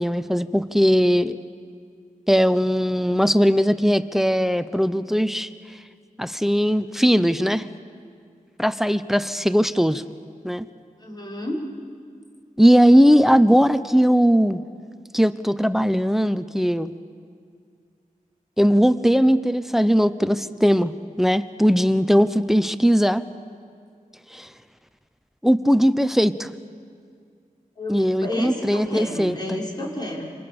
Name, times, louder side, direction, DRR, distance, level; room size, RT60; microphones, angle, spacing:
voice 1, 0.0-1.4 2.3-5.5 6.2-7.7 8.6-10.0 10.4-10.6 12.6-14.6 15.1-16.9 18.6-20.9 21.2-23.2 24.3-24.5 25.4-26.5 27.9-29.6, equal, ahead, 13 dB, 0.8 m, -19 dB
voice 2, 11.0-11.7 27.8-30.2, left 1 dB, 30° left, -2 dB, 5.9 m, -30 dB
27.5 x 26.0 x 7.0 m, 2.2 s
wide cardioid pair, 70°, 14 cm